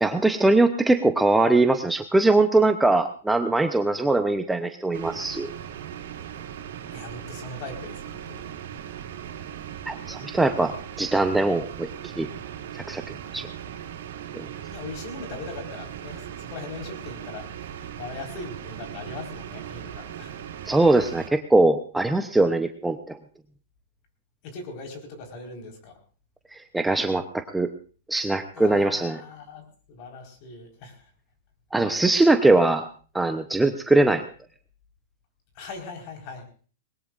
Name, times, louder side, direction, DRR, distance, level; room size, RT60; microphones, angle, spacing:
voice 1, 0.0-5.5 9.9-10.7 11.0-11.9 12.2-12.3 12.7-13.0 13.3-13.5 14.3-14.5 20.7-23.2 26.5-27.7 28.1-29.2 31.7-32.9 33.1-34.2, right 2 dB, 5° right, 7 dB, 0.7 m, -21 dB
sound 1, 4.9-21.3, right 9 dB, 70° right, 2.9 m, -38 dB
voice 2, 6.9-8.5 14.7-17.6 18.0-20.4 24.4-26.0 28.6-31.1 35.5-36.5, left 3 dB, 40° left, 3 dB, 4.5 m, -40 dB
20.5 x 19.5 x 2.5 m, 0.39 s
hypercardioid pair, 145°, 0 cm